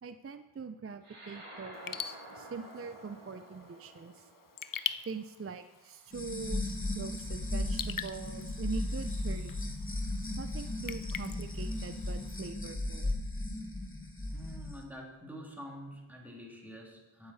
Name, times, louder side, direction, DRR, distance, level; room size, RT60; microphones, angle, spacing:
voice 1, 0.0-4.3 5.1-9.6 10.4-13.1, right 5 dB, 30° right, 10 dB, 0.4 m, -43 dB
sound 1, 1.0-5.8, right 1 dB, 80° right, 2.3 m, -51 dB
Raindrop / Drip, 1.7-12.5, left 7 dB, 45° left, 0.5 m, -44 dB
sound 2, 6.1-14.7, left 1 dB, 25° left, 1.3 m, -36 dB
voice 2, 14.3-17.3, equal, 5° right, -1 dB, 2.1 m, -47 dB
9.0 x 8.5 x 4.1 m, 1.1 s
wide cardioid pair, 40°, 50 cm